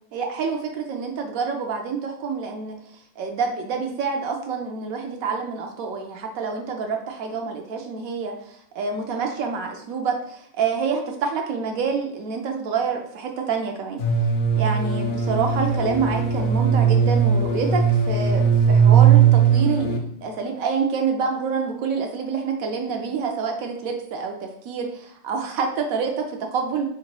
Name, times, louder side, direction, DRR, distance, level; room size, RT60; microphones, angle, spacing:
voice 1, 0.1-2.8 3.2-14.0 14.6-26.8, right 5 dB, 85° right, 3 dB, 1.0 m, -27 dB
sound 1, 14.0-20.0, right 7 dB, 65° left, 0.5 m, -18 dB
4.1 x 3.9 x 2.2 m, 0.69 s
omnidirectional pair, 1.4 m